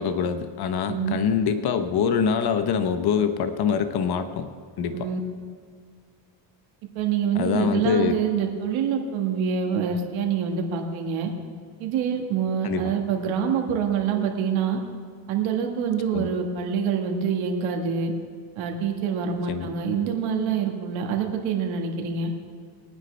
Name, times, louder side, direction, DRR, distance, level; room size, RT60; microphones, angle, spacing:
voice 1, 0.0-4.5 4.8-5.1 7.3-8.2 12.6-12.9 16.1-16.3 19.5-19.7, left 7 dB, 55° left, 9 dB, 1.0 m, -24 dB
voice 2, 0.9-1.2 4.9-5.2 6.9-11.3 11.8-14.8 15.3-18.1 18.5-22.3, right 7 dB, 85° right, 2 dB, 1.7 m, -26 dB
21.5 x 9.7 x 3.4 m, 2.1 s
cardioid pair, 95°, 46 cm